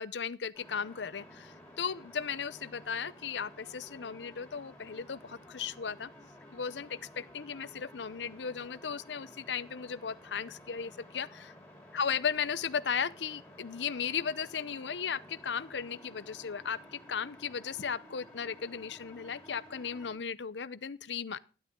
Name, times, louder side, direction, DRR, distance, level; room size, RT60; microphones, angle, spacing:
voice 1, 0.0-6.1 6.5-11.5 11.9-21.4, left 6 dB, 85° left, 0.7 m, -36 dB
sound 1, 0.5-20.1, equal, 5° left, 4.2 m, -54 dB
12.5 x 11.0 x 3.7 m
head